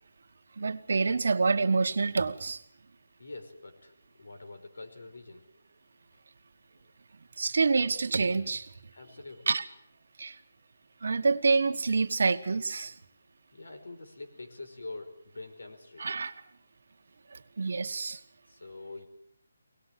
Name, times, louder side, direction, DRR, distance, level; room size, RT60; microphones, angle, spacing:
voice 1, 0.6-2.6 7.4-8.7 9.5-9.6 10.2-10.4 11.0-12.9 16.0-16.3 17.3-18.2, right 4 dB, 55° right, 6 dB, 1.4 m, -27 dB
voice 2, 3.2-5.5 8.9-9.6 12.8-13.0 13.5-16.1 18.5-19.1, left 2 dB, 90° left, 7 dB, 5.4 m, -45 dB
23.5 x 19.0 x 7.6 m, 0.67 s
hypercardioid pair, 175°, 0 cm